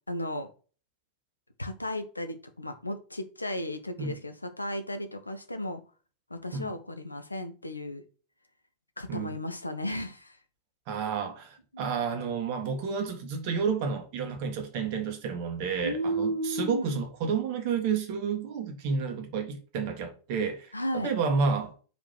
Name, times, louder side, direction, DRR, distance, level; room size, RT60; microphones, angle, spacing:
voice 1, 0.1-0.5 1.6-5.8 6.3-8.0 9.0-10.4 11.7-11.9 15.8-17.0 20.7-21.1, equal, 85° left, 0.9 m, -34 dB
voice 2, 10.9-21.7, right 5 dB, 45° right, 1.7 m, -30 dB
5.1 x 5.1 x 5.9 m
figure-of-eight pair, 90°, 0 cm